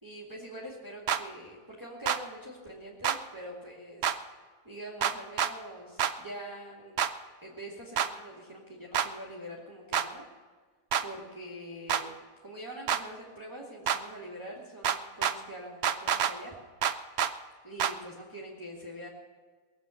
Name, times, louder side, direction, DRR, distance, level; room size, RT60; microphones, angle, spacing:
voice 1, 0.0-4.2 4.6-7.0 7.4-10.2 11.0-12.1 12.4-16.6 17.6-19.1, equal, 10° right, -4 dB, 2.2 m, -44 dB
sound 1, 1.1-1.2 2.1-2.2 3.0-3.2 4.0-4.2 5.0-5.5 6.0-6.1 7.0-7.1 8.0-8.1 8.9-9.1 9.9-10.1 10.9-11.1 11.9-12.0 12.9-13.0 13.9-14.0 14.8-15.4 15.8-16.3 16.8-17.3 17.8-17.9, right 8 dB, 60° right, 0.7 m, -27 dB
21.0 x 8.1 x 6.5 m, 1.4 s
omnidirectional pair, 1.7 m